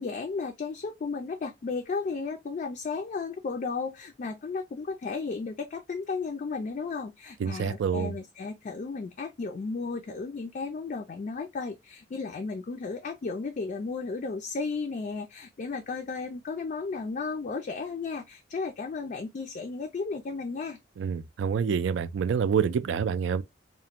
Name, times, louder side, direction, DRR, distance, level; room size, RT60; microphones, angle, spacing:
voice 1, 0.0-20.8, left 4 dB, 40° left, 0.3 m, -34 dB
voice 2, 7.4-8.1 21.0-23.4, right 7 dB, 75° right, 0.3 m, -27 dB
2.5 x 2.1 x 2.8 m
head